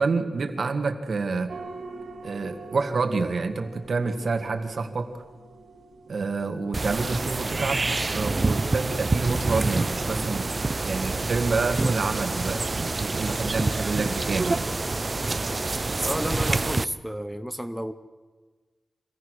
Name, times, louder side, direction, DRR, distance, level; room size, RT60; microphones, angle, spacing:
voice 1, 0.0-1.5 2.2-5.2 6.1-10.5 10.8-14.7, right 4 dB, 55° right, 6 dB, 1.9 m, -28 dB
sound 1, 1.5-16.3, right 3 dB, 80° right, 2.2 m, -47 dB
sound 2, 6.7-16.8, right 3 dB, 30° right, 0.5 m, -27 dB
voice 2, 16.0-17.9, equal, ahead, 7 dB, 0.8 m, -31 dB
25.0 x 17.0 x 6.4 m, 1.3 s
wide cardioid pair, 110°, 0 cm